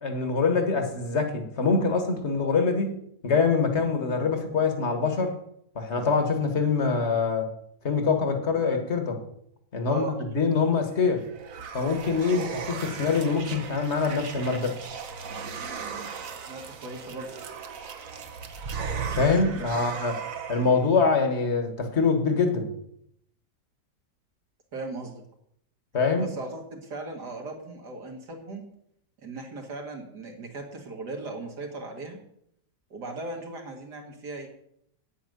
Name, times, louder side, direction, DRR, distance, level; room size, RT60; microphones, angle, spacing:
voice 1, 0.0-5.4 5.8-7.5 7.8-9.2 9.7-11.2 11.7-14.8 19.2-20.2 20.5-22.7 25.9-26.3, left 4 dB, 40° left, 6 dB, 1.7 m, -24 dB
sound 1, 10.9-20.9, right 5 dB, 55° right, 1.3 m, -37 dB
voice 2, 16.5-17.3 19.5-19.6 24.7-25.2 26.2-28.6 29.2-32.2 32.9-34.5, right 2 dB, 75° right, 2 dB, 2.5 m, -37 dB
9.1 x 8.5 x 6.7 m, 0.72 s
omnidirectional pair, 1.8 m